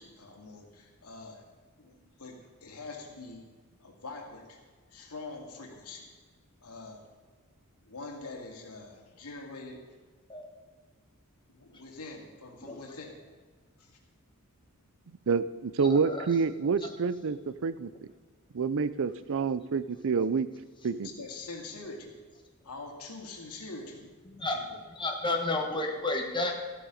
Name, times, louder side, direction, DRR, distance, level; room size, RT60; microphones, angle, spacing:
voice 1, 0.0-1.4 1.8-3.5 3.8-4.6 4.9-6.1 6.6-7.0 7.8-9.8 11.5-13.2 13.8-13.9 20.9-22.1 22.6-24.8, left 3 dB, 90° left, 1 dB, 2.3 m, -44 dB
voice 2, 15.3-17.9 18.5-20.5 20.8-21.1, right 5 dB, 65° right, 15 dB, 0.5 m, -28 dB
voice 3, 24.3-24.6 24.9-26.6, left 2 dB, 20° left, 2 dB, 1.5 m, -31 dB
14.0 x 8.9 x 5.2 m, 1.4 s
head